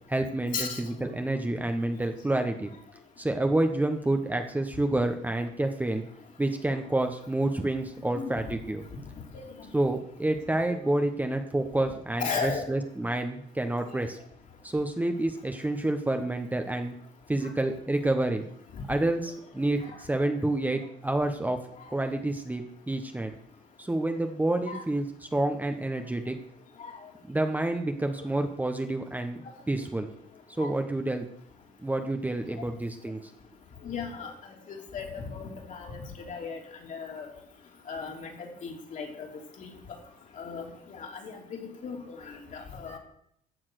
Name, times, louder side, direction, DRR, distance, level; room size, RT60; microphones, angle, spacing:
voice 1, 0.1-2.7 3.2-6.0 6.4-8.8 9.7-14.2 14.6-17.0 17.3-18.5 18.9-21.6 21.9-23.3 23.8-25.0 25.3-26.4 27.3-29.4 29.7-30.1 30.6-31.3 31.8-33.2, right 1 dB, 10° right, 5 dB, 1.1 m, -28 dB
voice 2, 12.2-12.7 13.9-14.0 18.7-18.8 24.7-24.8 26.8-27.0 30.6-30.7 33.8-34.3 34.7-36.6 36.9-37.3 37.9-39.3 39.6-39.8 40.4-41.4 41.8-43.0, left 5 dB, 50° left, 1 dB, 3.3 m, -36 dB
14.0 x 7.2 x 6.5 m, 0.71 s
cardioid pair, 110°, 17 cm